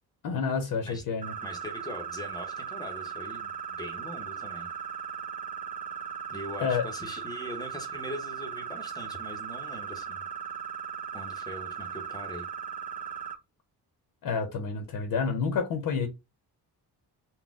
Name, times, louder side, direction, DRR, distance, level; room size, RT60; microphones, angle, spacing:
voice 1, 0.2-1.3 6.6-6.8 14.2-16.1, left 5 dB, 65° left, 0.8 m, -29 dB
sound 1, 1.2-13.3, right 7 dB, 20° right, 0.5 m, -38 dB
voice 2, 1.4-4.7 6.3-10.2 11.1-12.5, equal, 10° left, 0.7 m, -41 dB
4.0 x 2.2 x 3.5 m
wide cardioid pair, 180°, 39 cm